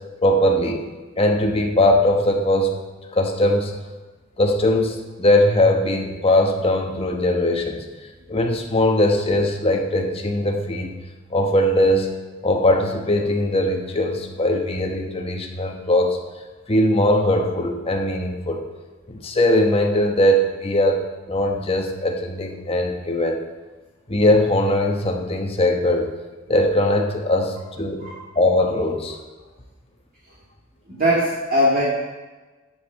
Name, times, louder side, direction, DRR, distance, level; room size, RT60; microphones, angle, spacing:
voice 1, 0.2-0.9 1.2-2.8 3.1-3.7 4.4-7.8 8.3-10.9 11.3-12.1 12.4-16.2 16.7-18.6 19.1-21.0 21.3-23.4 24.1-26.1 26.5-28.1 28.3-29.2, left 1 dB, 30° left, 2 dB, 1.1 m, -20 dB
voice 2, 30.9-31.8, equal, 45° right, -6 dB, 2.1 m, -20 dB
7.4 x 7.3 x 6.8 m, 1.2 s
head